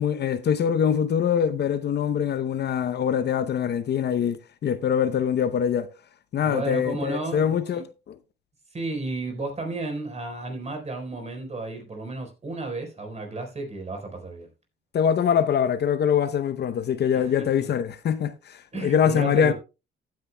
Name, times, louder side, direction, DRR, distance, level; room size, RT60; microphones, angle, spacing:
voice 1, 0.0-5.9 6.3-7.9 14.9-19.5, left 8 dB, 55° left, 0.8 m, -23 dB
voice 2, 6.4-7.8 8.7-14.5 17.1-17.7 18.7-19.5, right 2 dB, 35° right, 4.2 m, -33 dB
15.5 x 9.4 x 2.2 m
cardioid pair, 90°, 20 cm